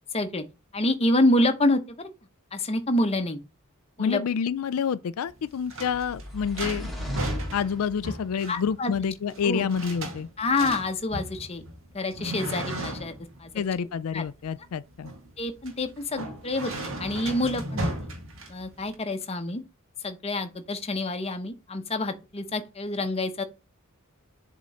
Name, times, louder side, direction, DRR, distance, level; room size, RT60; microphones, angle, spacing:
voice 1, 0.1-0.4 0.7-2.1 2.5-3.4 4.0-4.2 8.5-8.9 9.4-9.7 10.4-11.6 11.9-13.1 13.4-13.5 14.1-14.2 15.4-17.9 18.5-19.6 20.0-23.4, left 2 dB, 30° left, 0.8 m, -27 dB
voice 2, 4.0-6.9 7.5-10.3 13.5-15.1, left 7 dB, 85° left, 0.4 m, -28 dB
sound 1, 5.3-18.9, right 1 dB, 65° right, 1.7 m, -36 dB
sound 2, 5.8-8.3, left 1 dB, ahead, 1.7 m, -37 dB
7.3 x 3.7 x 4.2 m
head